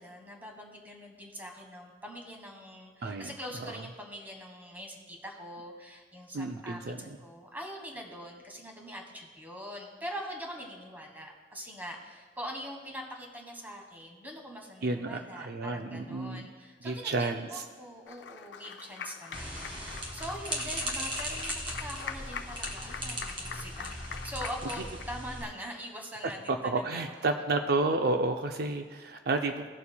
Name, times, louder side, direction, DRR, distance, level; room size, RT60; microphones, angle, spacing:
voice 1, 0.0-27.4, equal, 10° right, 1 dB, 1.4 m, -43 dB
voice 2, 6.3-7.0 14.8-16.5 16.8-17.5 26.5-29.6, right 3 dB, 65° right, 5 dB, 0.5 m, -30 dB
Applause, 18.1-25.0, left 6 dB, 85° left, 0.5 m, -43 dB
sound 1, 19.3-25.4, equal, 30° right, 1.8 m, -38 dB
19.0 x 7.0 x 2.2 m, 1.5 s
head